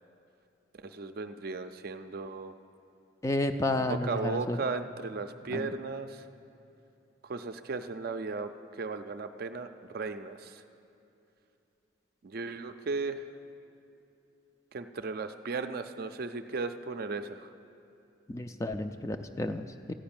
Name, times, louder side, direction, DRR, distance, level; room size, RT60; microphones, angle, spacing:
voice 1, 0.8-2.5 3.9-6.2 7.2-9.7 9.9-10.5 12.2-13.2 14.7-17.5, right 4 dB, 55° right, 8 dB, 0.5 m, -36 dB
voice 2, 3.2-4.6 5.5-5.7 18.3-19.9, left 2 dB, 15° left, 7 dB, 0.3 m, -31 dB
14.0 x 5.1 x 8.8 m, 2.8 s
head